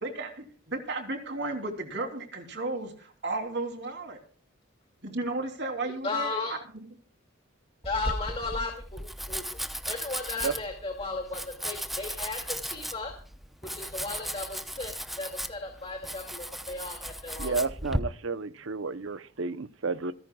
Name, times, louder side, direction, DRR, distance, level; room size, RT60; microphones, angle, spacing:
voice 1, 0.0-4.2 5.0-6.3 6.7-6.8, right 2 dB, 60° right, 3.2 m, -34 dB
voice 2, 6.0-6.5 7.8-9.4 9.9-13.1 13.7-17.6, left 3 dB, 30° left, 2.4 m, -35 dB
Domestic sounds home sounds, 7.8-18.0, equal, ahead, 0.8 m, -36 dB
voice 3, 17.4-20.1, right 4 dB, 75° right, 0.8 m, -31 dB
28.0 x 11.0 x 2.4 m
head